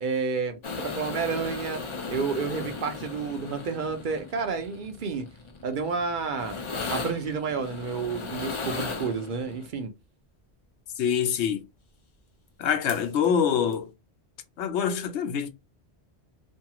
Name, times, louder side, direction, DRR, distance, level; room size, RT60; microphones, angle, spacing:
voice 1, 0.0-1.8 2.1-5.2 5.6-6.6 6.9-9.9, right 5 dB, 55° right, 0.7 m, -30 dB
sound 1, 0.6-9.7 12.6-12.7 12.9-13.3 13.7-13.8, left 4 dB, 40° left, 0.4 m, -37 dB
voice 2, 11.0-11.6 12.6-13.9 14.6-15.5, left 8 dB, 85° left, 0.9 m, -25 dB
2.6 x 2.3 x 2.8 m
omnidirectional pair, 1.1 m